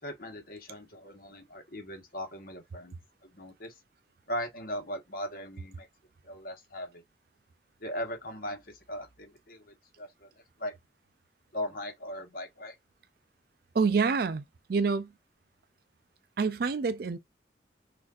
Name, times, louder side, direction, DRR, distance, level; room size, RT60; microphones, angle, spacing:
voice 1, 0.0-3.7 4.3-5.9 6.2-7.0 7.8-10.3 10.6-10.7 11.5-12.7, equal, 50° left, 1.3 m, -39 dB
voice 2, 13.7-14.4 14.7-15.1 16.4-17.2, right 5 dB, 55° right, 0.4 m, -27 dB
6.3 x 2.6 x 2.4 m
head